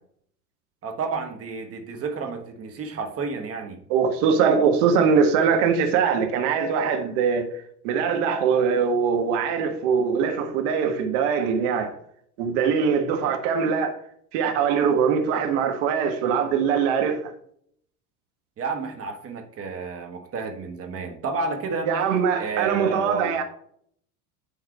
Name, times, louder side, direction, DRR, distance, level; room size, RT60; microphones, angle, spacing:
voice 1, 0.8-3.8 18.6-21.9 22.4-23.3, right 4 dB, 30° right, 1.7 m, -31 dB
voice 2, 3.9-7.5 7.8-11.9 12.4-14.0 14.3-17.3 21.9-23.4, right 6 dB, 50° right, 1.5 m, -22 dB
9.8 x 4.1 x 4.8 m
figure-of-eight pair, 75°, 46 cm